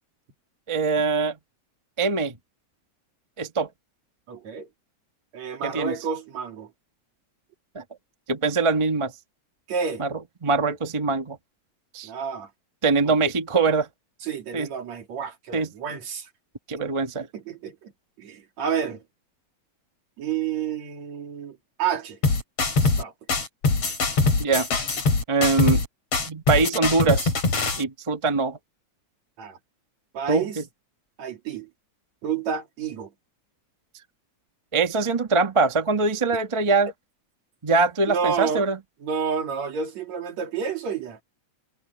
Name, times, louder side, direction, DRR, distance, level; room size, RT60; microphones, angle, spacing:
voice 1, 0.7-1.4 2.0-2.3 3.4-3.7 5.6-5.9 7.7-7.8 8.3-9.1 10.0-10.1 10.4-11.4 11.9-12.1 12.8-13.9 14.5-14.7 15.5-15.7 16.7-17.3 24.4-24.7 25.3-25.8 26.3-27.3 27.8-28.6 30.3-30.6 34.7-36.9 37.6-38.8, right 4 dB, 30° right, 0.6 m, -23 dB
voice 2, 4.3-4.7 5.3-6.7 9.7-10.0 12.0-12.5 13.1-13.2 14.2-16.3 17.3-17.9 18.2-19.0 20.2-22.2 22.8-23.1 29.4-29.6 30.1-30.6 31.2-31.7 32.2-33.1 36.3-36.4 38.1-38.7 39.0-41.2, right 6 dB, 65° right, 3.5 m, -30 dB
sound 1, 22.2-23.0 23.3-25.9 26.1-27.8, left 3 dB, 55° left, 5.3 m, -22 dB
omnidirectional pair, 3.4 m